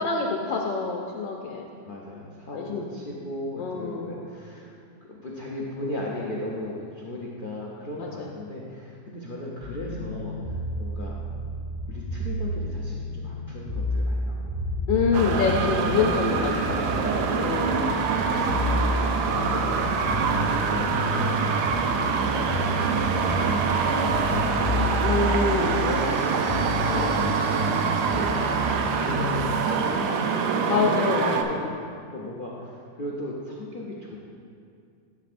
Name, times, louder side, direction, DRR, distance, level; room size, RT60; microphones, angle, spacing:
voice 1, 0.0-1.7 2.5-2.9 3.6-4.2 8.0-8.3 14.9-16.9 17.1-18.0 25.0-25.8 26.9-27.3 30.7-31.8, left 5 dB, 80° left, 0 dB, 1.3 m, -27 dB
voice 2, 1.8-4.7 5.0-11.2 11.9-14.5 15.1-16.9 17.2-21.7 22.0-24.9 25.7-26.4 26.9-27.2 27.9-31.6 32.1-34.2, left 1 dB, 65° left, -4 dB, 0.5 m, -36 dB
sound 1, 9.6-29.5, left 1 dB, 5° right, 1.9 m, -31 dB
sound 2, 15.1-31.4, right 5 dB, 70° right, 1.1 m, -25 dB
12.0 x 6.7 x 2.5 m, 2.3 s
omnidirectional pair, 2.0 m